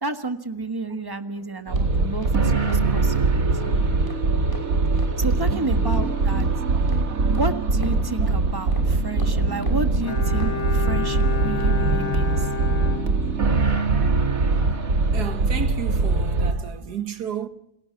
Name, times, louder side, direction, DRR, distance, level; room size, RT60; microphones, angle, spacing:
voice 1, 0.0-3.8 4.9-6.5 7.3-12.5, right 2 dB, 15° right, 1.6 m, -31 dB
sound 1, 1.3-11.7 12.0-12.2, equal, 15° left, 6.0 m, -45 dB
sound 2, 1.7-16.5, right 3 dB, 60° right, 2.4 m, -22 dB
Bowed string instrument, 10.0-13.8 14.1-14.2, left 7 dB, 45° left, 2.8 m, -31 dB
voice 2, 15.1-17.5, right 8 dB, 90° right, 2.0 m, -33 dB
29.0 x 20.5 x 5.9 m
omnidirectional pair, 1.6 m